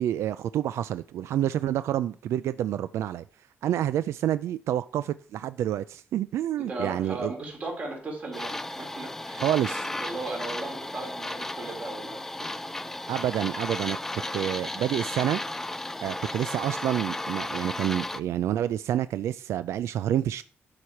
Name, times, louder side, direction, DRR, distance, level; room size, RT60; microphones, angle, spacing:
voice 1, 0.0-3.2 3.6-7.3 9.4-9.8 13.1-14.0 14.3-15.4 16.0-20.4, right 11 dB, 85° right, 0.4 m, -28 dB
voice 2, 6.7-9.5 9.8-12.6, right 2 dB, 35° right, 3.3 m, -37 dB
sound 1, 8.3-18.2, left 1 dB, 10° left, 0.4 m, -34 dB
11.5 x 4.8 x 5.9 m
wide cardioid pair, 180°, 5 cm